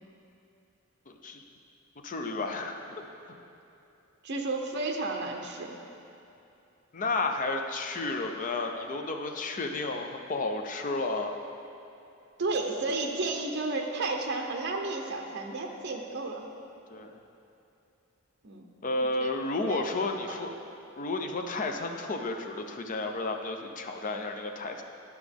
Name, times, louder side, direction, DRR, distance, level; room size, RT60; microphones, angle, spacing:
voice 1, 1.1-1.4 2.0-3.0 6.9-11.3 16.9-17.2 18.8-20.5 21.0-24.8, left 2 dB, 40° left, 4 dB, 0.6 m, -32 dB
voice 2, 4.2-5.8 12.4-16.4 18.4-18.7 19.0-19.3 19.7-20.6, right 3 dB, 55° right, 2 dB, 0.7 m, -33 dB
11.0 x 6.0 x 3.5 m, 2.8 s
head